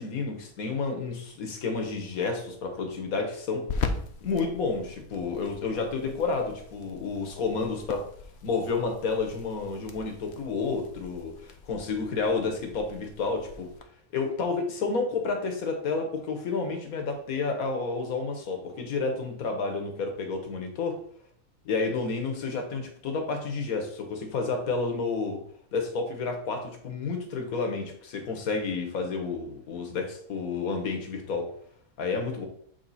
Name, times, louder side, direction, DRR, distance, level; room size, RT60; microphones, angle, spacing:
voice 1, 0.0-3.7 4.2-8.1 8.4-13.7 14.1-21.0 21.7-25.4 25.7-31.5 32.0-32.5, left 4 dB, 75° left, 4 dB, 1.6 m, -30 dB
sound 1, 1.6-13.8, left 4 dB, 55° left, 0.9 m, -40 dB
7.7 x 3.6 x 4.1 m, 0.63 s
omnidirectional pair, 1.5 m